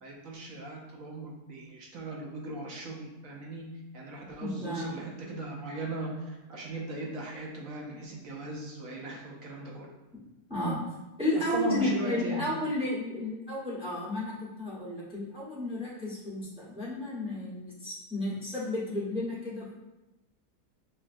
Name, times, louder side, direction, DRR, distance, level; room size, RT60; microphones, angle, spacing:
voice 1, 0.0-9.9 11.5-12.5, right 1 dB, 65° right, -2 dB, 0.9 m, -38 dB
voice 2, 4.4-4.9 10.5-10.8 11.2-19.7, left 1 dB, 5° right, -8 dB, 0.7 m, -32 dB
6.0 x 2.2 x 2.5 m, 1.0 s
omnidirectional pair, 1.8 m